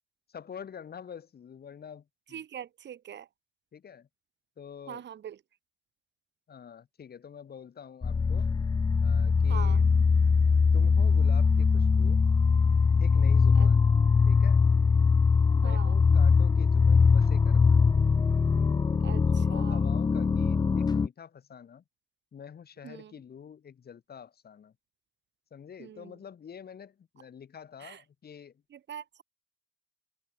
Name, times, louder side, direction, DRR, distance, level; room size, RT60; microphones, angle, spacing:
voice 1, 0.3-2.4 3.7-4.1 4.6-5.1 6.5-8.5 9.0-9.9 10.7-12.2 13.0-13.8 14.3-14.7 15.5-17.9 19.3-21.8 22.3-24.7 25.5-28.6, left 7 dB, 50° left, 6.1 m, -47 dB
voice 2, 2.3-3.3 4.9-5.4 9.5-9.8 13.6-13.7 15.6-15.9 19.0-19.2 19.5-19.8 22.8-23.1 25.8-26.1 27.8-28.0 28.9-29.2, right 9 dB, 60° right, 5.3 m, -42 dB
sound 1, 8.0-21.1, left 5 dB, 20° left, 0.4 m, -22 dB
cardioid pair, 90°, 20 cm